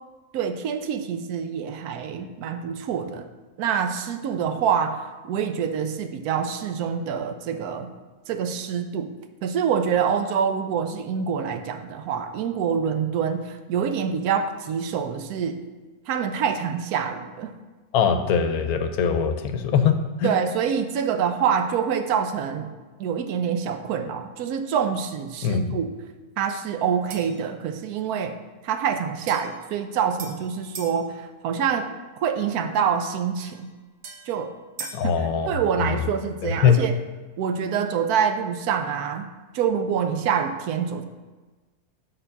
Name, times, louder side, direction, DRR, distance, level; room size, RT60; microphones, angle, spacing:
voice 1, 0.3-3.3 3.6-7.9 8.3-9.1 9.4-15.6 16.1-17.5 20.2-22.7 23.0-25.9 26.4-28.4 28.6-31.9 32.2-33.7 34.3-34.5 34.8-36.9 37.4-39.3 39.5-41.0, right 7 dB, 90° right, 8 dB, 1.1 m, -26 dB
voice 2, 17.9-20.3 25.4-25.6 34.9-35.5 35.8-36.0 36.4-36.8, left 7 dB, 80° left, 8 dB, 1.1 m, -22 dB
sound 1, 27.1-27.5 29.3-31.0 33.4-35.1, right 4 dB, 70° right, 1.4 m, -41 dB
6.8 x 3.7 x 5.5 m, 1.3 s
omnidirectional pair, 1.6 m